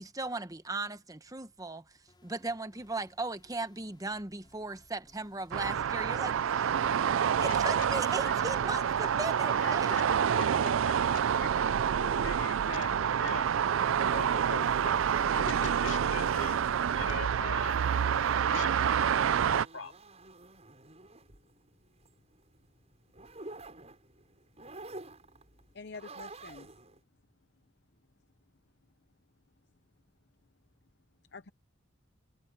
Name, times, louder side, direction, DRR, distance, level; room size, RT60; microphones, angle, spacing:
voice 1, 0.0-1.8 2.2-6.7 7.1-9.9, right 3 dB, 20° right, 1.0 m, -37 dB
sound 1, 2.1-8.9, left 1 dB, 20° left, 4.9 m, -63 dB
sound 2, 5.5-19.7, right 8 dB, 85° right, 0.4 m, -28 dB
voice 2, 7.3-8.3 9.6-11.5 12.2-13.5 14.1-15.0 15.3-16.6 16.9-17.8 18.5-19.1 19.5-19.9, left 4 dB, 75° left, 2.3 m, -42 dB
sound 3, 11.8-27.0, right 2 dB, 35° right, 7.8 m, -51 dB
voice 3, 11.9-12.5 25.7-26.7 31.3-31.5, left 4 dB, 55° left, 0.8 m, -46 dB
head